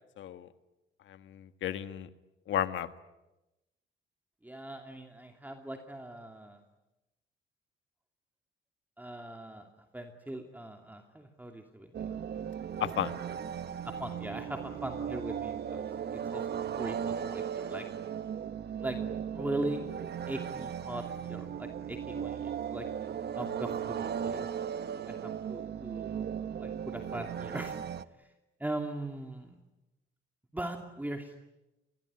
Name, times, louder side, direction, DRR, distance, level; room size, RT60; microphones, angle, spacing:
voice 1, 0.2-0.5 1.1-2.1 2.5-2.9 12.8-13.2, left 10 dB, 75° left, 11 dB, 1.6 m, -33 dB
voice 2, 4.4-6.6 9.0-9.7 9.9-12.2 13.8-15.9 16.3-16.5 16.8-17.9 18.8-19.0 19.3-19.8 20.3-22.9 23.3-24.5 25.1-26.2 26.6-27.8 28.2-28.3 28.6-29.6 30.5-31.4, right 1 dB, 10° right, 4 dB, 2.7 m, -40 dB
sound 1, 11.9-28.0, right 8 dB, 55° right, 1.2 m, -37 dB
26.5 x 21.5 x 9.6 m, 0.98 s
cardioid pair, 90°, 20 cm